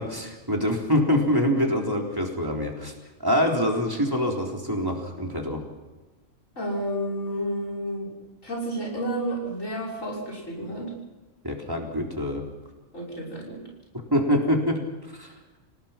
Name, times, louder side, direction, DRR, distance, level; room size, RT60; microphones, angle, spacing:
voice 1, 0.0-2.9 3.2-5.6 11.4-12.4 14.1-14.8 15.1-15.3, equal, 15° right, 0 dB, 3.9 m, -25 dB
voice 2, 6.6-8.1 8.4-10.9 12.9-13.6, right 1 dB, 75° left, -1 dB, 6.6 m, -31 dB
28.0 x 18.5 x 5.9 m, 1.2 s
omnidirectional pair, 1.4 m